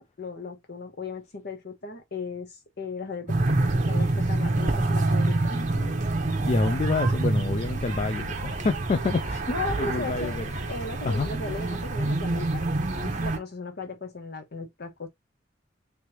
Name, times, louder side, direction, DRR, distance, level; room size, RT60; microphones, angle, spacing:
voice 1, 0.0-6.0 9.5-10.4 10.7-12.7 13.0-15.1, left 3 dB, 60° left, 1.0 m, -36 dB
sound 1, 3.3-13.4, right 2 dB, 40° right, 0.8 m, -27 dB
voice 2, 5.6-5.9 6.4-9.4 9.8-10.4 11.0-11.3, left 3 dB, 35° left, 0.4 m, -28 dB
3.3 x 3.2 x 2.9 m
head